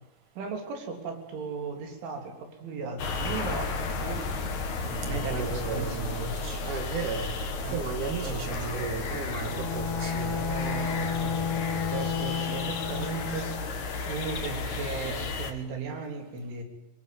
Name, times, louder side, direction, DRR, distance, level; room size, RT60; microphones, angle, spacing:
voice 1, 0.4-4.2 5.1-6.4 7.6-7.8 8.2-8.9 10.3-13.7 14.1-16.6, right 4 dB, 70° right, 4 dB, 5.9 m, -37 dB
sound 1, 3.0-15.5, left 3 dB, 50° left, 2.8 m, -33 dB
voice 2, 4.8-7.3 7.7-10.4, right 5 dB, 50° right, 6 dB, 3.0 m, -35 dB
Bowed string instrument, 9.4-13.7, left 6 dB, 70° left, 5.8 m, -32 dB
24.5 x 23.5 x 9.4 m, 0.84 s
omnidirectional pair, 5.8 m